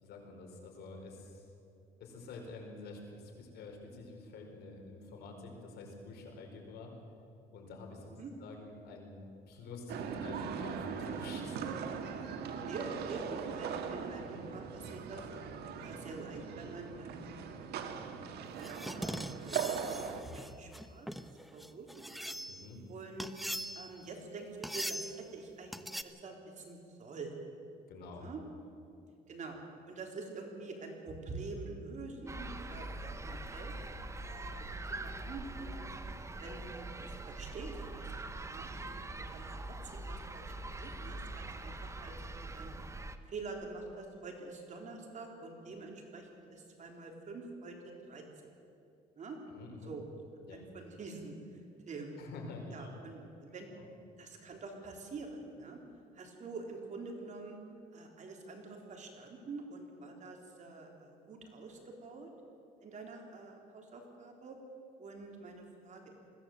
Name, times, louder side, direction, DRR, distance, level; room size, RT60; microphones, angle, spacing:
voice 1, 0.0-1.5 2.0-6.9 7.5-8.1 8.4-9.1 9.5-11.6 22.4-22.8 27.9-28.2 49.5-49.9 50.4-50.6 52.2-52.9 53.7-53.8, left 3 dB, 75° left, 1 dB, 4.7 m, -48 dB
sound 1, 9.9-20.2, right 7 dB, 70° right, 1.8 m, -40 dB
voice 2, 12.5-15.2 15.8-19.6 19.8-21.1 21.5-22.2 22.9-23.3 23.7-27.4 28.1-28.4 29.3-29.6 29.8-33.7 34.2-35.9 36.3-40.4 40.8-42.7 43.3-48.5 49.2-49.4 49.8-50.0 50.5-51.6 51.9-52.1 52.7-53.7 54.2-55.8 56.1-57.6 57.9-62.3 62.8-64.6 65.0-66.2, right 3 dB, 45° right, 1 dB, 3.8 m, -46 dB
sound 2, 18.6-22.7 23.2-24.0 24.6-25.2 25.7-26.0, equal, ahead, 0.8 m, -41 dB
sound 3, 32.3-43.2, right 2 dB, 15° right, 1.1 m, -43 dB
21.0 x 16.0 x 7.9 m, 2.7 s
cardioid pair, 110°, 17 cm